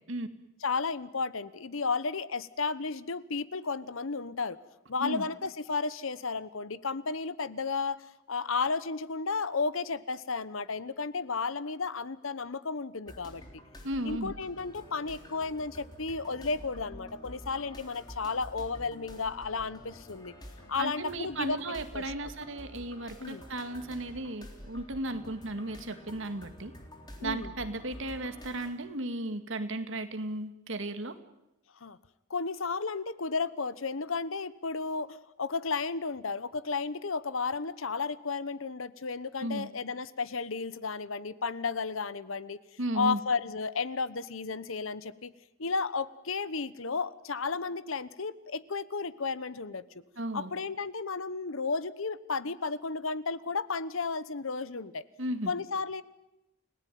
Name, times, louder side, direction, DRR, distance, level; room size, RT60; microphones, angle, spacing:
voice 1, 0.6-4.6 4.9-13.4 14.0-20.3 20.7-22.3 23.2-23.4 27.2-27.5 31.8-32.0 32.3-42.6 42.9-45.3 45.6-50.0 50.3-55.0 55.5-56.0, left 4 dB, 75° left, 16 dB, 1.0 m, -33 dB
sound 1, 13.0-28.7, equal, 20° left, 3.6 m, -48 dB
voice 2, 13.8-14.3 20.8-26.7 27.2-31.2 39.4-39.7 42.8-43.2 50.2-50.5 55.2-55.5, right 1 dB, 65° right, 8 dB, 2.1 m, -35 dB
29.5 x 18.0 x 9.3 m, 0.93 s
head